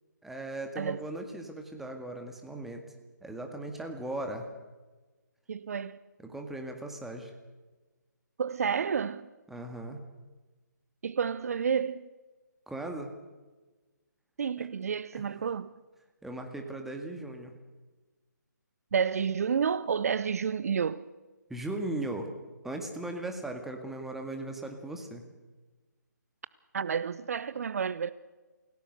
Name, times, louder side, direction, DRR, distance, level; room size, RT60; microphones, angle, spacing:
voice 1, 0.2-2.8 3.2-4.5 6.2-7.3 9.5-10.0 12.7-13.1 14.6-14.7 15.1-15.2 16.2-17.5 21.5-22.3 22.6-25.2, right 2 dB, 5° right, 1.9 m, -38 dB
voice 2, 5.5-6.0 8.4-9.3 11.0-12.0 14.4-15.7 18.9-21.1 26.7-28.1, right 7 dB, 50° right, 0.7 m, -30 dB
28.0 x 17.5 x 6.6 m
figure-of-eight pair, 150°, 10 cm